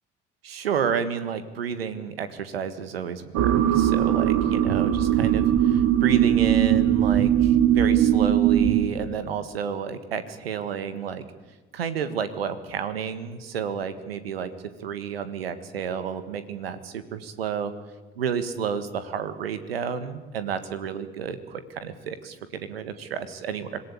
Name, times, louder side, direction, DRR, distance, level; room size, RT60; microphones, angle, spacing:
voice 1, 0.4-11.2 11.7-14.5 14.8-17.7 18.2-23.8, right 7 dB, 90° right, 12 dB, 1.7 m, -31 dB
sound 1, 3.3-8.9, right 10 dB, 65° right, 1.9 m, -20 dB
26.0 x 17.5 x 8.6 m, 1.2 s
hypercardioid pair, 55°, 29 cm